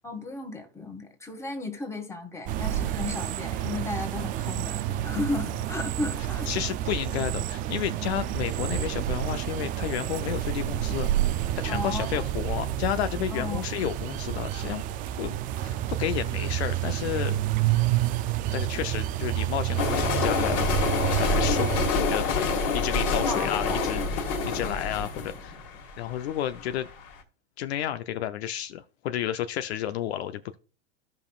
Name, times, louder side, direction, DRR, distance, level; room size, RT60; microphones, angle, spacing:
voice 1, 0.0-6.7 11.7-12.3 13.3-13.6 23.2-23.8, left 2 dB, 10° left, 1.8 m, -34 dB
sound 1, 2.5-21.9, right 13 dB, 25° right, 0.4 m, -29 dB
voice 2, 6.5-11.1 11.5-14.8 15.2-18.1 18.5-24.0 24.5-25.5 26.0-26.9 27.6-30.6, left 11 dB, 65° left, 0.7 m, -32 dB
sound 2, 19.8-26.8, left 4 dB, 40° left, 2.0 m, -27 dB
14.0 x 5.3 x 2.4 m
hypercardioid pair, 125°, 35 cm